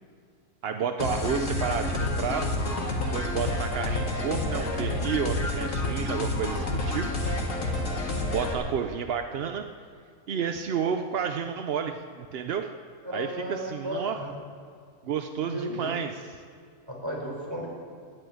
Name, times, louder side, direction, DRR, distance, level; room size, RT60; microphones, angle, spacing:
voice 1, 0.6-2.5 3.1-7.1 8.3-9.7 10.3-12.7 13.1-14.2 15.0-16.3, right 7 dB, 65° right, 7 dB, 0.6 m, -31 dB
sound 1, 1.0-8.5, left 2 dB, 55° left, 2.1 m, -29 dB
voice 2, 13.0-14.3 15.4-15.9 16.9-17.7, equal, 15° right, -2 dB, 3.9 m, -34 dB
11.0 x 11.0 x 9.3 m, 2.3 s
omnidirectional pair, 1.7 m